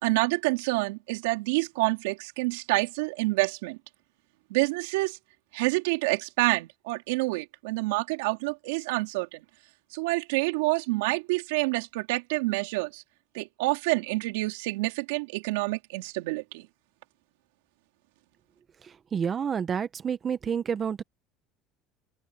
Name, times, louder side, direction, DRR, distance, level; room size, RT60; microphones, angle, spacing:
voice 1, 0.0-3.8 4.5-5.2 5.5-9.4 9.9-13.0 13.3-16.7, right 23 dB, 85° right, 4.2 m, -28 dB
voice 2, 19.1-21.0, right 7 dB, 35° right, 1.4 m, -29 dB
open air
supercardioid pair, 105°, 0 cm